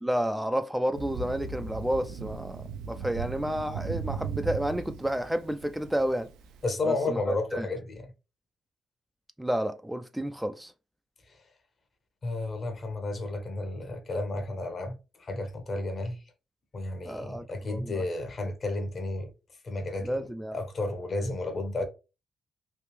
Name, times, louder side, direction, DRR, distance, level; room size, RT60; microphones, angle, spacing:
voice 1, 0.0-6.3 6.8-7.7 9.4-10.7 17.1-18.0 20.0-20.5, equal, 5° right, 0.4 m, -31 dB
Thunder, 0.9-6.6, right 6 dB, 80° right, 0.4 m, -37 dB
voice 2, 6.6-8.1 12.2-16.2 16.7-19.3 19.6-20.2 20.5-21.8, left 2 dB, 50° left, 1.0 m, -32 dB
3.3 x 2.4 x 3.1 m
hypercardioid pair, 50°, 0 cm